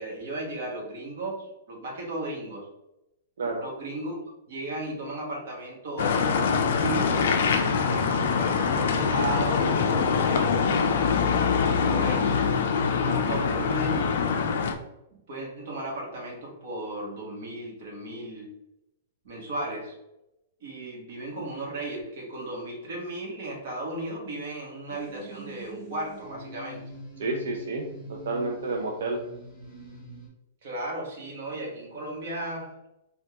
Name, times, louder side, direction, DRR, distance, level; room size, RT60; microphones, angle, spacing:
voice 1, 0.0-2.7 3.6-4.2 4.5-11.1 11.5-12.5 12.8-14.3 15.3-18.5 19.2-19.9 20.6-26.8 30.6-32.7, right 1 dB, 50° right, -2 dB, 1.0 m, -35 dB
sound 1, 6.0-14.7, left 5 dB, 55° left, 0.3 m, -24 dB
sound 2, 24.9-30.3, right 1 dB, 5° right, 0.9 m, -44 dB
voice 2, 27.2-29.2, right 3 dB, 80° right, 0 dB, 0.4 m, -30 dB
3.4 x 2.3 x 2.8 m, 0.90 s
hypercardioid pair, 180°, 0 cm